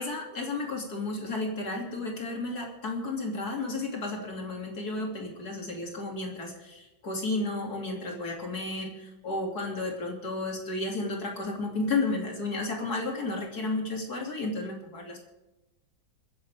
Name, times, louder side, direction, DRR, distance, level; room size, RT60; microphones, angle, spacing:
voice 1, 0.0-15.2, left 2 dB, 50° left, 0 dB, 3.4 m, -32 dB
27.0 x 11.0 x 3.6 m, 1.0 s
omnidirectional pair, 2.2 m